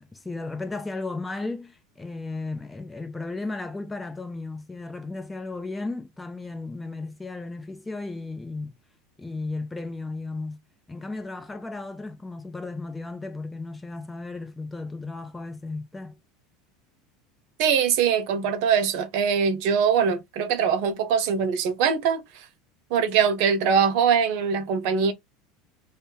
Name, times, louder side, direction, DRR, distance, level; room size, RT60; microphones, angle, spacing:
voice 1, 0.0-8.8 9.2-10.6 10.9-16.2, left 3 dB, 10° left, 0.7 m, -35 dB
voice 2, 17.6-22.5 22.9-25.1, right 7 dB, 65° right, 0.7 m, -22 dB
2.6 x 2.2 x 3.7 m
hypercardioid pair, 80°, 0 cm